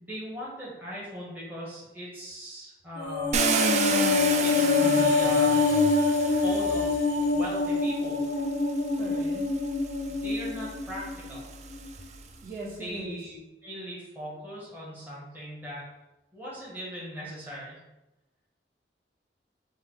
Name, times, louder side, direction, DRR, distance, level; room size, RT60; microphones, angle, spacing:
voice 1, 0.0-3.5 4.4-5.7 6.3-6.9 7.3-8.2 10.1-11.5 12.7-15.8 16.3-17.8, equal, 10° right, -7 dB, 1.0 m, -39 dB
sound 1, 3.0-11.4 11.7-11.9, left 4 dB, 65° left, 0.4 m, -25 dB
Car, 3.3-7.4 8.4-8.5 9.0-12.3, right 5 dB, 40° right, 0.4 m, -31 dB
voice 2, 9.0-9.5 12.4-13.2, right 2 dB, 55° right, -6 dB, 1.4 m, -39 dB
6.2 x 2.3 x 3.6 m, 0.97 s
head